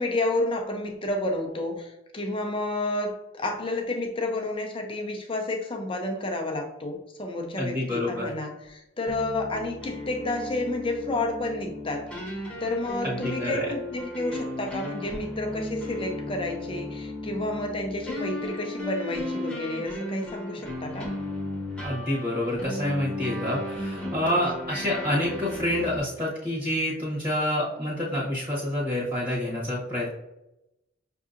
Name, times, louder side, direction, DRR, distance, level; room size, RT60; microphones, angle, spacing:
voice 1, 0.0-12.1 12.6-21.1 24.0-24.2, left 2 dB, 25° left, 2 dB, 0.5 m, -30 dB
voice 2, 7.6-8.3 13.0-13.6 21.8-30.1, left 1 dB, 25° right, -6 dB, 1.2 m, -28 dB
sound 1, 9.1-26.0, left 1 dB, 5° left, 0.9 m, -35 dB
5.9 x 2.7 x 2.5 m, 0.90 s
head